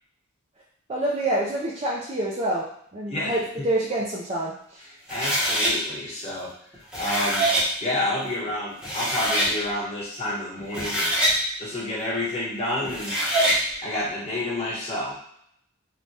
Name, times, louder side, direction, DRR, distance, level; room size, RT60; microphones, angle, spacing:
voice 1, 0.9-2.7 2.9-4.8, right 1 dB, 30° right, -4 dB, 0.4 m, -27 dB
voice 2, 3.1-3.7 5.1-7.5 7.8-11.2 11.6-13.1 13.8-15.2, left 1 dB, 30° left, -7 dB, 1.1 m, -29 dB
sound 1, 5.1-5.7 6.7-7.7 8.5-8.6 8.8-9.5 10.6-11.4 12.8-13.6, right 1 dB, 5° right, 0.8 m, -23 dB
3.2 x 2.2 x 2.7 m, 0.69 s
head